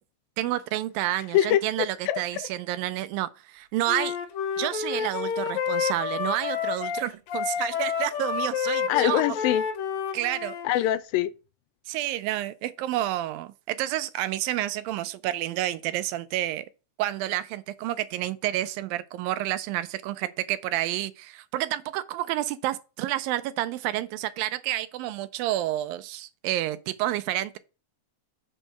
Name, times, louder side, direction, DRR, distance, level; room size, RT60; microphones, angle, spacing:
voice 1, 0.4-4.2 4.6-9.2 10.1-10.5 11.9-16.7 17.0-27.6, right 14 dB, 85° right, 2.4 m, -29 dB
voice 2, 1.3-2.5 8.9-9.6 10.6-11.3, left 13 dB, 85° left, 2.4 m, -24 dB
Wind instrument woodwind instrument, 3.9-10.7, left 7 dB, 70° left, 1.8 m, -29 dB
7.7 x 4.5 x 5.1 m
omnidirectional pair, 4.1 m